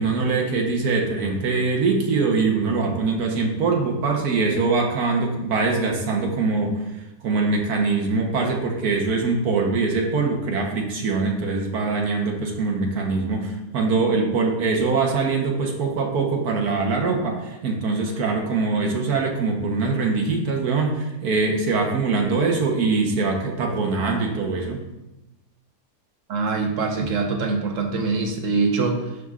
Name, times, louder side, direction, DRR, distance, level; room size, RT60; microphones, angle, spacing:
voice 1, 0.0-6.8 7.2-24.8, right 4 dB, 80° right, 0 dB, 1.5 m, -23 dB
voice 2, 26.3-29.0, right 4 dB, 60° right, 3 dB, 1.3 m, -23 dB
11.0 x 5.3 x 2.4 m, 0.97 s
omnidirectional pair, 1.6 m